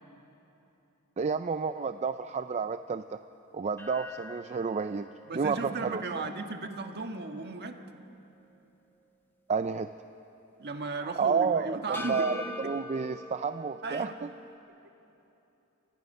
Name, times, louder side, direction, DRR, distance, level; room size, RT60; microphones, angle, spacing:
voice 1, 1.2-3.0 3.5-5.1 5.3-6.0 9.5-9.9 11.0-14.1, right 5 dB, 30° right, 10 dB, 0.4 m, -30 dB
sound 1, 3.8-8.1 8.4-8.5 11.9-14.6, left 2 dB, 10° left, 1.3 m, -44 dB
voice 2, 5.3-7.8 10.6-12.3 13.8-14.1, right 3 dB, 50° right, 5 dB, 1.5 m, -35 dB
28.0 x 25.0 x 5.5 m, 3.0 s
head